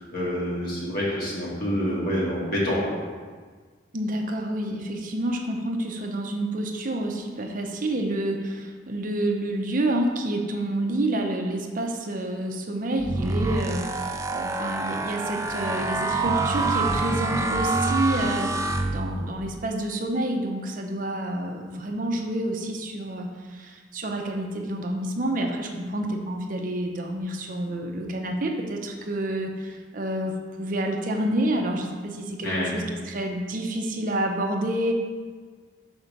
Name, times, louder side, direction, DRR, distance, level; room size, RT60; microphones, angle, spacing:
voice 1, 0.0-3.0 32.4-32.8, equal, 55° left, -6 dB, 2.0 m, -27 dB
voice 2, 3.9-34.9, right 1 dB, 50° right, 2 dB, 0.7 m, -28 dB
sound 1, 13.0-19.5, right 2 dB, 15° right, 0.3 m, -26 dB
6.1 x 4.4 x 5.2 m, 1.5 s
head